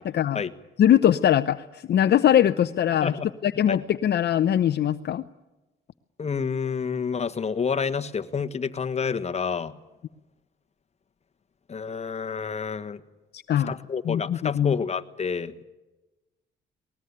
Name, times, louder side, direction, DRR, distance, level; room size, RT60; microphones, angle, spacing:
voice 1, 0.0-0.4 0.8-3.1 3.4-5.3 13.3-13.7 14.1-14.8, left 10 dB, 55° left, 10 dB, 0.7 m, -21 dB
voice 2, 6.2-9.7 11.7-13.0 13.7-15.6, left 6 dB, 35° left, 7 dB, 1.4 m, -29 dB
20.5 x 19.5 x 9.7 m, 1.1 s
cardioid pair, 90°, 20 cm